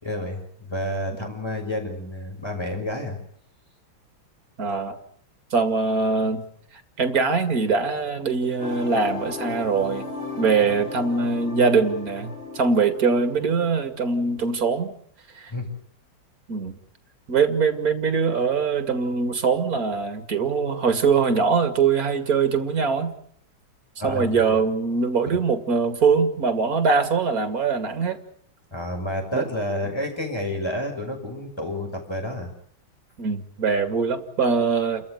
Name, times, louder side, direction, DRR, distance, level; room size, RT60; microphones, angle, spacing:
voice 1, 0.0-3.2 15.5-15.7 24.0-24.6 25.3-25.4 28.7-32.5, left 1 dB, 10° left, 3 dB, 6.1 m, -30 dB
voice 2, 4.6-5.0 5.5-6.4 7.0-10.0 10.4-14.9 15.4-15.5 16.5-16.8 17.3-23.1 24.0-28.2 29.3-29.4 33.2-35.1, right 5 dB, 45° right, 8 dB, 2.7 m, -22 dB
sound 1, 8.6-14.5, left 3 dB, 75° left, 5.9 m, -36 dB
29.5 x 14.0 x 9.5 m, 0.65 s
omnidirectional pair, 2.3 m